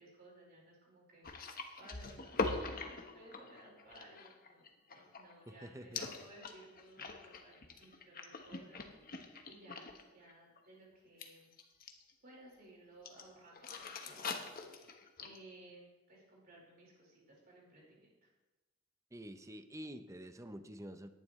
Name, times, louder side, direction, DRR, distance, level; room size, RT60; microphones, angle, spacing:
voice 1, 0.0-4.6 4.9-11.5 12.2-18.3, right 1 dB, 50° right, -4 dB, 4.7 m, -59 dB
sound 1, 1.2-5.6 5.9-10.0 10.3-10.6 11.2-12.1 13.0-13.2 13.5-15.4, left 3 dB, 45° left, 1.2 m, -43 dB
voice 2, 5.6-6.0 19.1-21.1, equal, 15° right, 9 dB, 0.7 m, -48 dB
18.0 x 11.0 x 3.2 m, 1.1 s
head